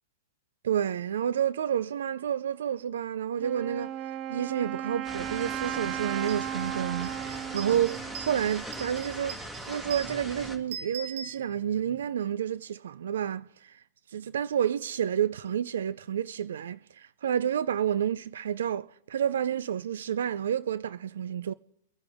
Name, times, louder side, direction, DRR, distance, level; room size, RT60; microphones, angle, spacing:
voice 1, 0.6-13.8 14.1-21.5, right 9 dB, 80° right, 0.5 m, -30 dB
Wind instrument woodwind instrument, 3.4-9.1, right 11 dB, 35° right, 0.6 m, -36 dB
sound 1, 5.0-10.6, right 1 dB, 10° right, 2.4 m, -40 dB
sound 2, 5.7-5.8 6.1-12.0, right 7 dB, 50° right, 5.2 m, -44 dB
24.0 x 9.7 x 3.5 m
hypercardioid pair, 135°, 0 cm